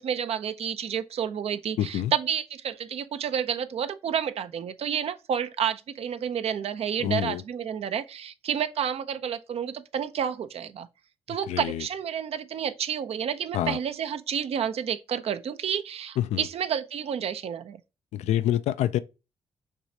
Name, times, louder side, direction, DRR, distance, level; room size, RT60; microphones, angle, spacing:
voice 1, 0.0-10.9 11.3-17.8, right 8 dB, 60° right, 0.5 m, -30 dB
voice 2, 1.8-2.1 7.0-7.4 11.5-11.8 13.5-13.8 16.2-16.4 18.1-19.0, left 12 dB, 70° left, 0.4 m, -26 dB
6.1 x 3.1 x 2.8 m
hypercardioid pair, 50°, 12 cm